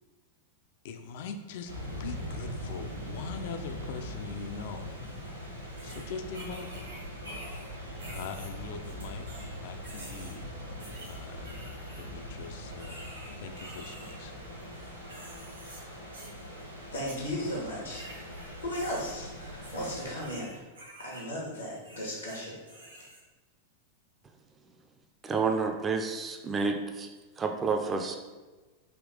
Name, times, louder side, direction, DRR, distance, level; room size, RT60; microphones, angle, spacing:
voice 1, 0.8-1.7 2.0-5.0 5.8-6.9 8.1-10.5 11.0-11.6 11.9-13.0 13.4-14.3, left 5 dB, 50° left, 7 dB, 0.4 m, -42 dB
sound 1, 1.7-20.2, equal, 90° right, 0.7 m, -41 dB
sound 2, 5.1-5.2 5.8-7.7 8.0-9.5 9.8-10.4 10.8-12.0 12.8-14.1 14.6-15.8 16.1-16.4 16.9-17.6 17.9-21.3 21.8-23.2, right 1 dB, 75° right, 1.1 m, -48 dB
voice 2, 16.9-18.3 18.6-20.6 21.0-22.6, equal, 80° left, -3 dB, 1.1 m, -36 dB
voice 3, 25.2-27.1 27.4-28.2, right 4 dB, 20° right, 4 dB, 0.4 m, -29 dB
3.6 x 2.9 x 3.6 m, 1.2 s
figure-of-eight pair, 90°, 0 cm